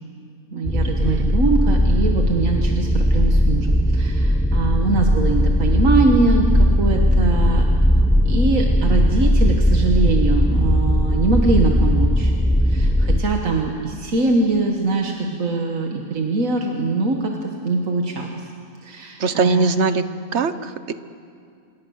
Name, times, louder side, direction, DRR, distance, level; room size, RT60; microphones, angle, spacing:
voice 1, 0.5-7.7 8.3-12.3 12.6-18.5 18.8-19.7, right 3 dB, 85° right, 2 dB, 1.9 m, -22 dB
sound 1, 0.6-13.2, equal, 5° left, 0.5 m, -18 dB
voice 2, 1.0-1.4 19.2-20.0 20.3-20.9, right 4 dB, 60° right, 12 dB, 1.2 m, -21 dB
27.0 x 22.0 x 6.4 m, 2.3 s
omnidirectional pair, 1.3 m